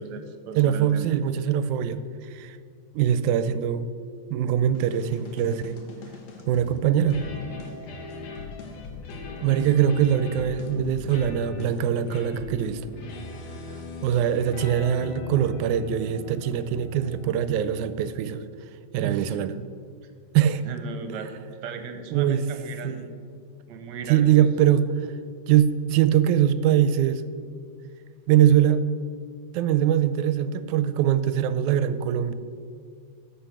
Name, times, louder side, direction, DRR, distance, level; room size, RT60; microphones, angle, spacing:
voice 1, 0.0-1.1 19.0-19.4 20.6-21.3 21.6-23.0 23.7-24.5, right 6 dB, 75° right, 7 dB, 2.1 m, -35 dB
voice 2, 0.6-2.0 2.3-2.6 2.9-3.9 4.3-5.8 6.5-7.2 9.4-12.8 14.0-18.4 18.9-19.5 20.3-20.7 22.1-22.4 22.8-23.1 24.1-24.9 25.5-27.3 28.3-28.8 29.5-32.3, right 10 dB, 90° right, 13 dB, 2.0 m, -22 dB
sound 1, 4.7-18.2, left 3 dB, 70° left, 2.5 m, -39 dB
13.0 x 5.7 x 6.6 m, 2.2 s
omnidirectional pair, 3.4 m